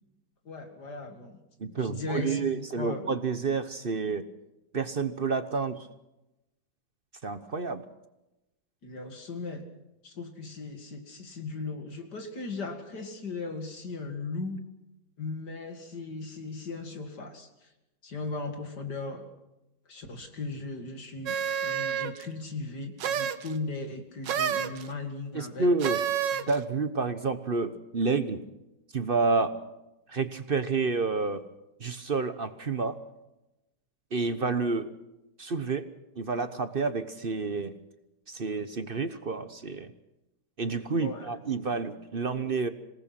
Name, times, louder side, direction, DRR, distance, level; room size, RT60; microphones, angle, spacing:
voice 1, 0.4-1.4 1.8-3.1 8.8-9.6 10.0-14.6 15.2-17.7 18.0-19.3 19.9-21.4 21.6-25.7 26.3-26.5 41.0-41.3, left 3 dB, 65° left, 5 dB, 2.9 m, -37 dB
voice 2, 1.6-4.3 4.7-5.9 7.2-7.8 25.3-26.0 26.5-28.4 28.9-29.5 30.1-31.4 31.8-33.0 34.1-34.9 35.4-35.9 36.2-37.8 38.3-39.9 40.6-42.7, right 4 dB, 40° right, 11 dB, 1.0 m, -29 dB
sound 1, 21.3-22.3 23.0-23.5 24.3-24.8 25.8-26.6, right 8 dB, 80° right, 1.7 m, -29 dB
27.0 x 18.5 x 6.0 m, 0.94 s
omnidirectional pair, 1.9 m